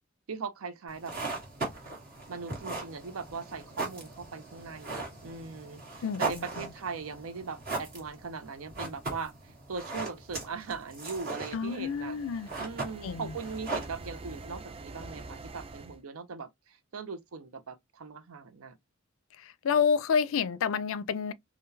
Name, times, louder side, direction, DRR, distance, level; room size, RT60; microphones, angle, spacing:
voice 1, 0.3-1.1 2.3-12.2 12.6-18.8, right 5 dB, 85° right, 0.6 m, -40 dB
sound 1, 0.9-14.5, right 3 dB, 45° right, 1.5 m, -39 dB
voice 2, 6.0-6.4 11.5-12.5 13.0-13.3 19.4-21.3, left 6 dB, 70° left, 0.4 m, -29 dB
sound 2, 11.5-16.0, right 3 dB, 25° right, 0.3 m, -46 dB
3.7 x 2.2 x 2.6 m
head